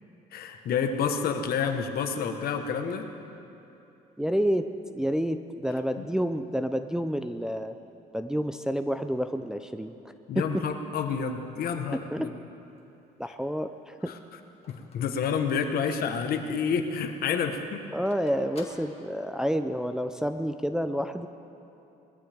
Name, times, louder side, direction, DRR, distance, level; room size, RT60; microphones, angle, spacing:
voice 1, 0.3-3.1 6.0-6.1 10.3-12.3 14.7-17.9, left 6 dB, 65° left, 6 dB, 1.3 m, -29 dB
voice 2, 4.2-4.7 4.9-7.8 8.1-10.6 11.9-12.3 13.2-14.1 17.9-21.3, equal, 5° right, 8 dB, 0.5 m, -29 dB
Telephone, 12.6-16.0 16.4-16.5 16.8-19.6, left 4 dB, 35° left, 1.9 m, -51 dB
21.0 x 14.0 x 3.5 m, 2.9 s
cardioid pair, 110°, 17 cm